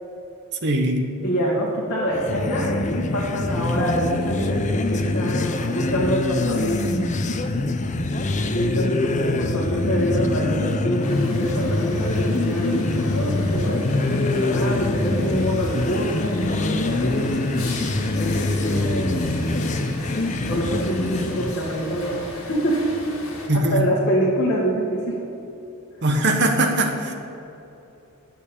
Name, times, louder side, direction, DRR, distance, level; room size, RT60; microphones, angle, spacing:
voice 1, 0.6-1.0 23.5-23.8 26.0-27.1, right 1 dB, 55° right, 3 dB, 1.3 m, -20 dB
voice 2, 1.2-6.9 8.5-17.4 18.2-19.2 20.5-22.9 23.5-25.2, equal, 50° left, -6 dB, 1.6 m, -25 dB
sound 1, 2.1-21.6, left 2 dB, 35° left, 0.6 m, -24 dB
sound 2, 11.0-23.5, left 1 dB, 65° left, 1.9 m, -36 dB
8.9 x 6.9 x 8.6 m, 2.9 s
head